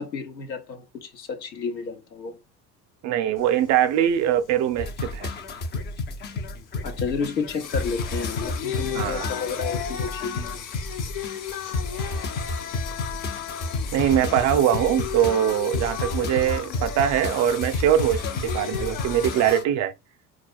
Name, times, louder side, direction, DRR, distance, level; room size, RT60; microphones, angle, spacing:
voice 1, 0.0-2.4 6.8-10.6, left 5 dB, 80° left, 1.0 m, -31 dB
voice 2, 3.0-5.3 8.9-9.3 13.9-19.9, right 10 dB, 35° right, 0.5 m, -22 dB
Singing, 3.4-19.6, left 9 dB, 40° left, 0.9 m, -35 dB
sound 1, 4.8-19.6, left 2 dB, 20° left, 0.5 m, -31 dB
3.9 x 2.3 x 4.4 m
figure-of-eight pair, 65°, 50 cm